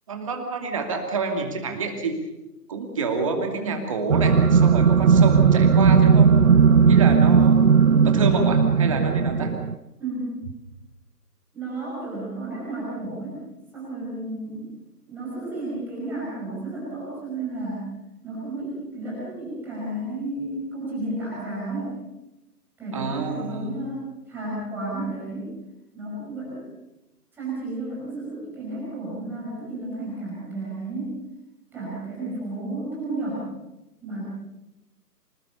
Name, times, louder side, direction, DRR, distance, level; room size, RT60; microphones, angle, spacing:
voice 1, 0.1-2.2 2.7-6.4 6.9-7.6 8.0-9.5 22.9-23.7, right 4 dB, 20° right, 4 dB, 2.6 m, -28 dB
sound 1, 4.1-9.7, right 6 dB, 60° right, 1.0 m, -17 dB
voice 2, 7.8-8.2 10.0-10.4 11.5-13.4 13.7-14.7 15.1-17.9 18.2-21.9 22.8-25.5 25.9-26.6 27.3-31.2 31.7-33.5 34.0-34.2, right 2 dB, 5° right, -8 dB, 5.3 m, -32 dB
26.0 x 20.0 x 6.9 m, 0.96 s
figure-of-eight pair, 155°, 49 cm